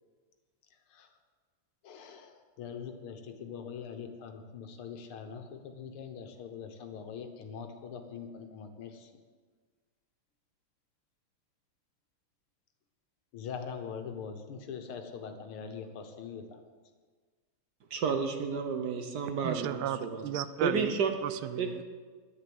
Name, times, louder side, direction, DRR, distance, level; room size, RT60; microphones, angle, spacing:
voice 1, 1.8-9.1 13.3-16.6, left 6 dB, 80° left, 6 dB, 2.0 m, -43 dB
voice 2, 17.9-20.2 20.6-21.1 21.6-21.7, right 5 dB, 55° right, 5 dB, 1.4 m, -31 dB
voice 3, 19.4-20.9 21.2-21.8, right 11 dB, 80° right, 13 dB, 1.4 m, -34 dB
10.5 x 10.0 x 7.9 m, 1.5 s
omnidirectional pair, 2.4 m